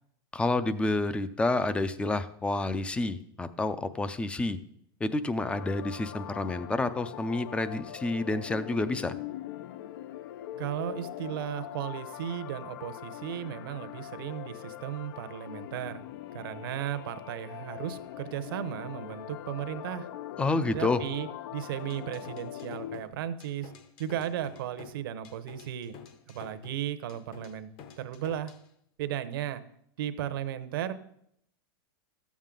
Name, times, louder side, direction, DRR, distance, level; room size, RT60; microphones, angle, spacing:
voice 1, 0.3-4.6 5.0-9.1 20.4-21.0, left 2 dB, 10° left, 14 dB, 0.4 m, -29 dB
sound 1, 5.4-23.0, left 12 dB, 65° left, 0.5 m, -42 dB
voice 2, 10.6-16.0 16.3-20.1 20.7-23.7 24.0-25.9 26.3-27.7 28.0-28.5 29.0-29.6 30.0-30.9, right 11 dB, 70° right, 12 dB, 0.8 m, -35 dB
sound 2, 21.8-28.7, left 7 dB, 40° left, 0.9 m, -50 dB
13.0 x 7.3 x 3.8 m, 0.72 s
supercardioid pair, 135°, 12 cm